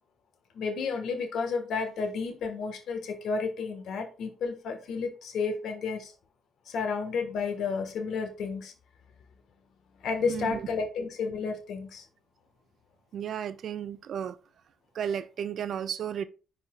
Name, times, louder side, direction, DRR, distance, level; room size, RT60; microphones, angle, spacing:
voice 1, 0.5-6.1 6.7-8.7 10.0-12.0, left 5 dB, 70° left, 1.3 m, -31 dB
voice 2, 10.3-10.6 13.1-14.4 14.9-16.3, right 8 dB, 65° right, 0.4 m, -33 dB
10.0 x 4.2 x 2.3 m
cardioid pair, 90°, 0 cm